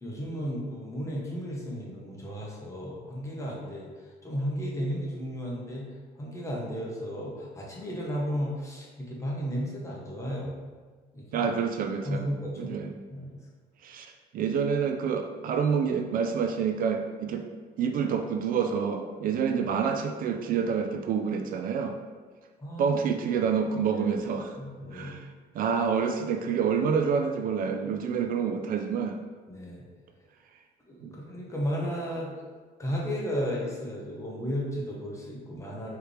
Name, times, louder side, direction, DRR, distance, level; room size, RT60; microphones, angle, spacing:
voice 1, 0.0-3.9 4.2-5.9 6.2-10.5 11.1-11.5 12.0-12.8 13.1-13.4 19.3-19.4 22.6-22.9 23.9-25.3 29.5-29.8 30.9-32.4 32.8-36.0, equal, 15° left, -4 dB, 1.2 m, -34 dB
voice 2, 11.3-12.2 12.6-12.9 13.8-17.4 17.8-22.0 22.8-24.5 24.9-25.2 25.5-29.2 31.0-31.2, right 6 dB, 55° right, 5 dB, 0.4 m, -28 dB
4.8 x 3.2 x 3.3 m, 1.5 s
cardioid pair, 110°, 17 cm